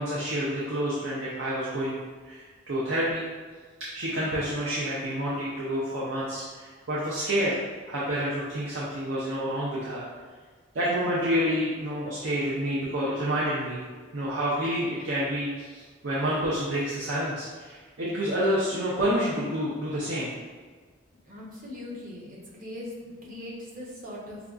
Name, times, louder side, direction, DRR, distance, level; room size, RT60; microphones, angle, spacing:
voice 1, 0.0-2.0 2.2-3.2 3.9-7.6 7.9-10.0 10.7-13.8 14.1-20.3, equal, 75° right, -7 dB, 0.6 m, -28 dB
voice 2, 21.3-24.4, left 1 dB, 45° right, -5 dB, 0.9 m, -40 dB
5.0 x 2.3 x 2.4 m, 1.5 s
head